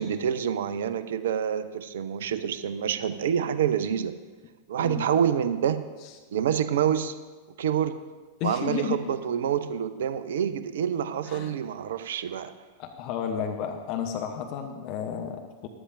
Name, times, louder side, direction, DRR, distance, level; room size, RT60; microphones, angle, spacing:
voice 1, 0.0-4.1 4.7-5.8 6.3-7.1 7.6-8.0 8.4-12.5, right 8 dB, 60° right, 13 dB, 0.6 m, -27 dB
voice 2, 8.4-9.0 11.3-11.5 12.8-15.7, left 7 dB, 40° left, 5 dB, 0.8 m, -32 dB
13.5 x 11.5 x 2.6 m, 1.3 s
figure-of-eight pair, 90°, 0 cm